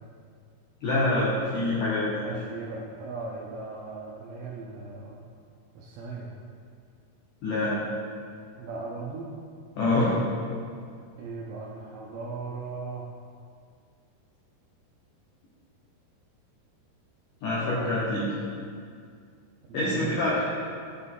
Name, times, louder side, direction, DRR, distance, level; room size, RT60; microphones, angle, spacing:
voice 1, 0.8-2.2 7.4-7.8 9.8-10.1 17.4-18.3 19.7-20.3, left 2 dB, 70° left, -7 dB, 2.1 m, -25 dB
voice 2, 2.2-5.2 5.7-6.3 8.6-9.3 9.9-10.3 11.2-13.1 19.6-20.2, right 4 dB, 80° right, -4 dB, 2.6 m, -38 dB
11.5 x 4.1 x 3.7 m, 2.2 s
omnidirectional pair, 4.7 m